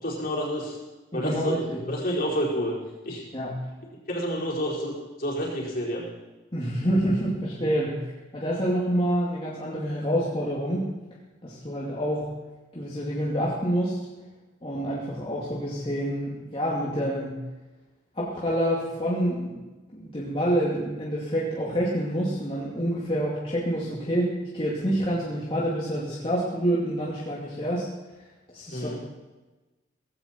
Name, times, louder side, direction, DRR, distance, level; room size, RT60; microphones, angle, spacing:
voice 1, 0.0-0.8 1.1-1.6 1.9-2.8 3.0-3.2 4.1-6.0 28.7-29.0, equal, 50° left, -4 dB, 4.8 m, -29 dB
voice 2, 1.1-1.8 3.3-3.6 6.5-8.0 8.3-10.9 11.4-12.3 12.7-14.0 14.6-17.4 18.1-19.6 19.9-27.9 28.5-28.9, equal, 30° left, -6 dB, 2.5 m, -27 dB
17.5 x 16.0 x 4.5 m, 1.2 s
head